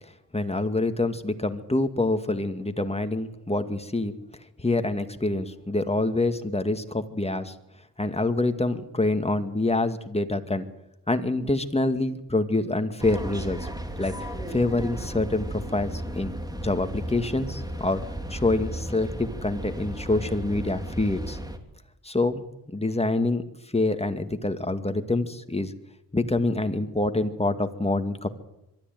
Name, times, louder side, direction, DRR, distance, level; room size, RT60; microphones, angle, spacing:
voice 1, 0.3-4.2 4.6-7.5 8.0-10.7 11.1-13.6 14.0-14.1 14.5-16.3 16.6-18.0 18.3-21.4 22.0-23.4 23.7-25.7 26.1-28.3, left 2 dB, 15° left, 8 dB, 2.2 m, -26 dB
sound 1, 13.0-21.6, right 1 dB, 10° right, 3.0 m, -35 dB
22.5 x 13.5 x 9.3 m, 0.91 s
cardioid pair, 60°, 38 cm